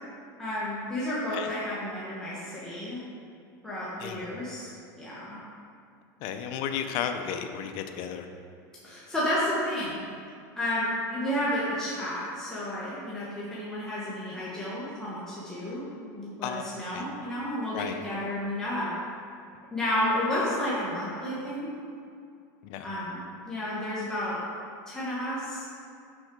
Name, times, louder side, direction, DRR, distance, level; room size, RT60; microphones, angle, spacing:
voice 1, 0.4-3.0 3.6-4.7 5.0-5.4 8.8-10.1 10.6-15.8 16.1-18.9 19.7-21.7 22.8-23.2 23.5-24.4 24.9-25.8, left 1 dB, 5° left, -9 dB, 1.2 m, -31 dB
voice 2, 6.2-8.3 16.4-16.6 16.9-17.1 17.7-18.0 22.6-22.9, left 8 dB, 60° left, 6 dB, 0.6 m, -33 dB
6.1 x 5.3 x 3.8 m, 2.4 s
supercardioid pair, 130°, 10 cm